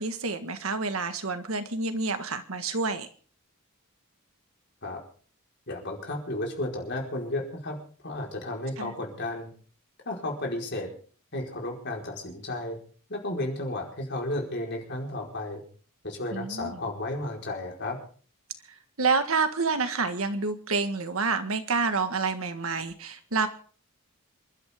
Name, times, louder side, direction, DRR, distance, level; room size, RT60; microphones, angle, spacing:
voice 1, 0.0-3.1 8.8-8.9 16.3-16.7 19.0-23.5, right 4 dB, 70° right, 9 dB, 1.6 m, -28 dB
voice 2, 5.7-9.5 10.0-10.9 11.3-12.8 13.1-15.6 16.0-18.0, left 1 dB, 50° left, 0 dB, 4.7 m, -33 dB
27.0 x 12.0 x 3.7 m, 0.43 s
head